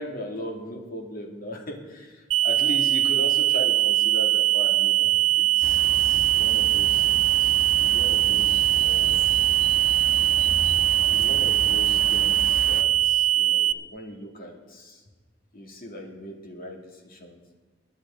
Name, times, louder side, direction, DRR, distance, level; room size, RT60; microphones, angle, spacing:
voice 1, 0.0-7.1 7.8-9.4 11.1-15.0 15.5-17.4, equal, 50° left, 1 dB, 2.3 m, -38 dB
sound 1, 2.3-13.7, right 14 dB, 75° right, 0.6 m, -21 dB
sound 2, 5.6-12.8, right 2 dB, 45° right, 1.1 m, -35 dB
21.5 x 10.0 x 3.8 m, 1.4 s
head